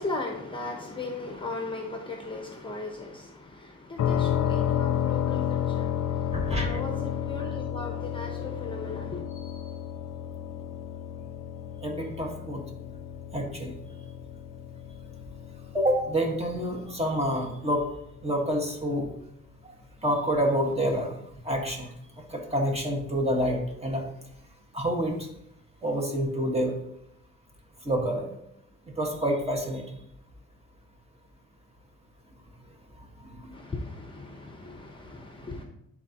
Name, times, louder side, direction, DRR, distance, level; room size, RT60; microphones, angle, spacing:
voice 1, 0.0-9.2 33.5-35.6, left 3 dB, 15° left, 2 dB, 1.0 m, -37 dB
sound 1, 4.0-17.7, left 9 dB, 60° left, 0.7 m, -32 dB
voice 2, 6.3-6.8 9.4-9.5 11.8-12.6 13.3-13.7 15.7-17.8 18.2-19.1 20.0-21.2 21.4-21.9 22.3-24.0 24.7-25.3 25.8-26.7 27.9-28.3 29.0-29.8 33.4-33.6, equal, 20° right, 1 dB, 1.8 m, -27 dB
11.0 x 4.2 x 3.0 m, 0.77 s
cardioid pair, 90°, 30 cm